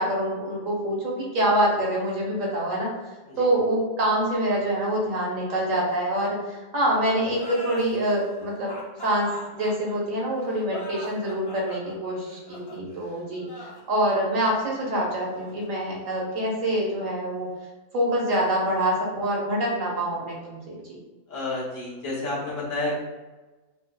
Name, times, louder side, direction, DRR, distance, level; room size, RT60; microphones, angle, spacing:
voice 1, 0.0-2.9 3.4-8.7 9.0-9.3 9.5-13.4 13.9-17.5 17.9-21.0, right 1 dB, 80° right, -4 dB, 1.4 m, -25 dB
sound 1, 7.3-16.5, left 2 dB, 30° left, 0.4 m, -43 dB
voice 2, 21.3-23.0, left 2 dB, 75° left, -7 dB, 1.5 m, -30 dB
5.0 x 2.0 x 2.2 m, 1.2 s
omnidirectional pair, 1.3 m